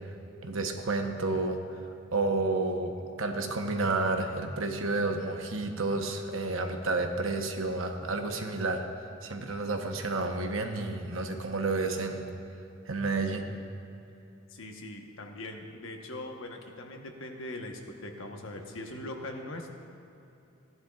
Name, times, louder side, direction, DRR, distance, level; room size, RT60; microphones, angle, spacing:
voice 1, 0.4-1.6 2.1-2.9 3.2-8.8 9.2-12.3 12.9-13.5, right 3 dB, 85° right, 4 dB, 1.0 m, -30 dB
voice 2, 14.5-19.7, left 1 dB, 80° left, 3 dB, 1.1 m, -41 dB
16.0 x 11.0 x 2.4 m, 2.8 s
head